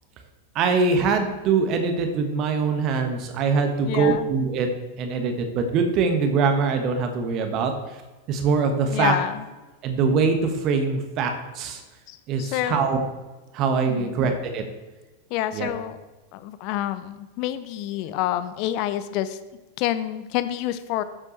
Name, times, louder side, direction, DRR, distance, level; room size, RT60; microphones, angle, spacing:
voice 1, 0.5-4.7 5.0-7.7 8.3-9.1 9.8-11.8 12.3-13.0 13.5-14.6 15.5-15.7, right 5 dB, 35° right, 5 dB, 1.4 m, -23 dB
voice 2, 3.8-4.3 8.9-9.4 12.1-12.9 13.9-14.2 15.3-16.0 16.3-19.4 19.8-21.0, left 12 dB, 45° left, 13 dB, 0.5 m, -28 dB
12.5 x 7.4 x 3.2 m, 1.1 s
figure-of-eight pair, 90°, 0 cm